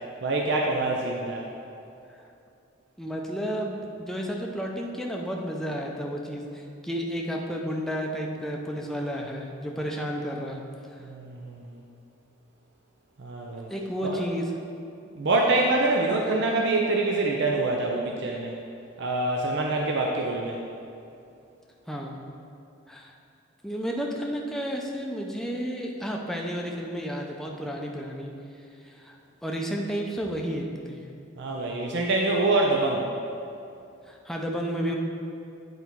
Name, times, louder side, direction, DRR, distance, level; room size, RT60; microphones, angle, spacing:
voice 1, 0.2-1.5 11.0-11.8 13.2-13.7 14.0-14.1 15.2-18.5 19.0-20.6 31.4-33.1, right 2 dB, 60° right, 0 dB, 0.6 m, -25 dB
voice 2, 3.0-10.6 13.7-14.5 21.9-22.2 22.9-23.1 23.6-28.3 28.8-29.2 29.4-31.0 34.1-35.0, equal, ahead, -1 dB, 0.6 m, -32 dB
9.4 x 4.0 x 4.5 m, 2.6 s
head